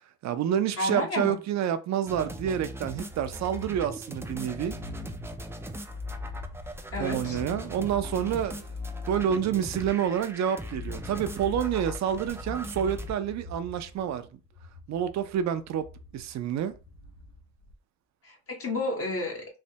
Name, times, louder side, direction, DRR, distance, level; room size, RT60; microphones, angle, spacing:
voice 1, 0.2-4.8 7.0-8.7 9.1-14.3 14.9-15.9 16.1-16.7, right 9 dB, 65° right, 0.5 m, -28 dB
voice 2, 0.8-1.4 6.9-7.4 18.2-19.4, left 2 dB, 50° left, 0.9 m, -31 dB
sound 1, 2.1-13.1, left 1 dB, 10° right, 0.3 m, -39 dB
sound 2, 3.0-17.7, left 2 dB, 90° left, 0.6 m, -47 dB
3.2 x 2.1 x 2.8 m
cardioid pair, 90°, 30 cm